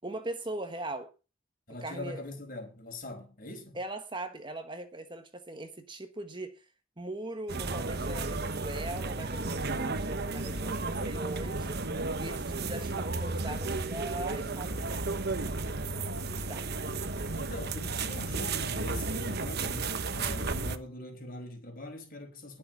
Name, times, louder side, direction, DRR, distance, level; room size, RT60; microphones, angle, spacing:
voice 1, 0.0-1.1 1.8-2.2 3.7-6.6 7.0-15.0 16.2-16.7, right 2 dB, 25° right, 1.3 m, -40 dB
voice 2, 1.7-3.8 10.4-11.3 17.3-22.6, left 1 dB, 40° left, 5.1 m, -42 dB
sound 1, 7.5-20.8, right 3 dB, 50° right, 1.2 m, -33 dB
20.5 x 6.9 x 6.0 m
head